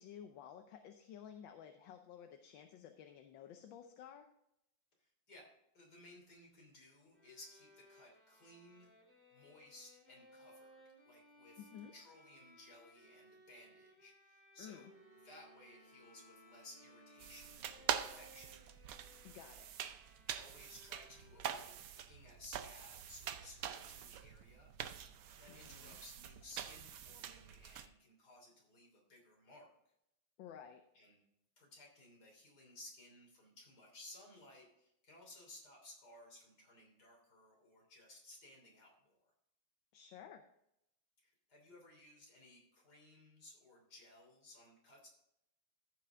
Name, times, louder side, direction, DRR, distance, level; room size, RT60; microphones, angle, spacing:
voice 1, 0.0-4.3 11.6-11.9 14.6-14.9 19.2-19.7 25.5-26.0 30.4-30.8 39.9-40.4, left 9 dB, 75° left, 6 dB, 1.4 m, -53 dB
voice 2, 5.0-5.5 5.7-8.9 9.3-10.7 11.0-14.9 15.2-18.7 20.1-29.7 30.9-31.2 31.6-39.3 41.2-45.1, left 1 dB, 50° left, 0 dB, 3.5 m, -59 dB
Bowed string instrument, 7.1-21.8, equal, 5° right, 2.4 m, -64 dB
Bowed string instrument 2, 14.7-18.3 18.7-19.1, right 1 dB, 25° right, 1.4 m, -66 dB
sound 1, 17.2-27.9, right 9 dB, 70° right, 0.8 m, -45 dB
14.5 x 5.8 x 3.6 m, 0.79 s
omnidirectional pair, 2.2 m